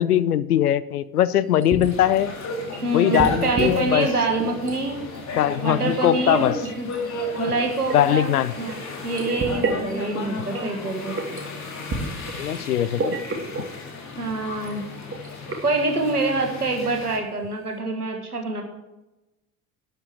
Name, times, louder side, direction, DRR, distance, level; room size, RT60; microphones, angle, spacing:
voice 1, 0.0-2.3 2.9-4.1 5.4-6.5 7.9-8.5 12.3-13.2, left 11 dB, 80° left, 16 dB, 0.6 m, -21 dB
sound 1, 1.3-2.0 2.5-3.7 4.0-4.8 5.1-8.8 9.1-10.8 11.1-11.4 11.9-12.6 13.0-13.8 14.1-14.2 14.6-14.8 15.1-15.7 16.1-16.2 16.6-16.9 17.3-17.4, right 3 dB, 30° right, 2.8 m, -31 dB
sound 2, 1.8-17.2, left 2 dB, 35° left, 3.8 m, -34 dB
voice 2, 2.8-5.0 5.6-6.5 6.8-6.9 7.4-8.3 8.6-8.8 9.0-11.2 14.2-14.8 15.6-18.6, right 3 dB, 85° right, 3 dB, 1.7 m, -25 dB
12.0 x 9.6 x 4.9 m, 0.97 s
figure-of-eight pair, 55°, 45 cm